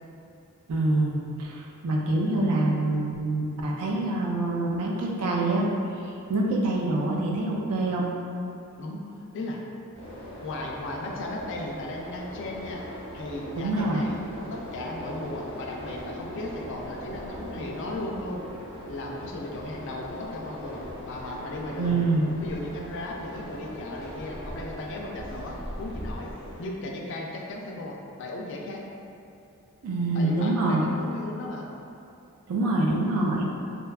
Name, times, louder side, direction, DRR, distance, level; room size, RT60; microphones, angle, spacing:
voice 1, 0.7-5.7 6.3-8.1 13.6-14.1 21.8-22.3 29.8-30.9 32.5-33.4, right 2 dB, 85° right, -1 dB, 0.4 m, -25 dB
voice 2, 8.8-9.6 10.4-12.8 13.1-14.2 14.5-18.4 18.9-22.0 22.4-26.3 26.6-28.8 30.1-31.7, left 2 dB, 55° left, -1 dB, 0.3 m, -36 dB
sound 1, 9.9-26.6, equal, 25° right, 1.0 m, -40 dB
2.6 x 2.2 x 2.3 m, 2.6 s
head